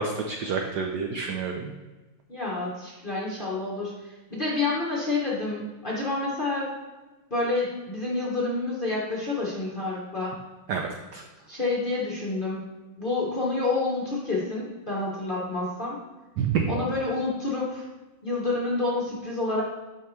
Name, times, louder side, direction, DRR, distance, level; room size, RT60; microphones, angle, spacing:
voice 1, 0.0-1.7 10.7-11.2 16.4-16.7, right 6 dB, 75° right, 3 dB, 0.9 m, -28 dB
voice 2, 2.3-6.7 7.3-10.4 11.5-12.6 13.0-16.0 16.7-17.9 18.2-19.6, left 3 dB, 35° left, -5 dB, 0.8 m, -28 dB
7.7 x 5.4 x 3.2 m, 1.2 s
omnidirectional pair, 2.3 m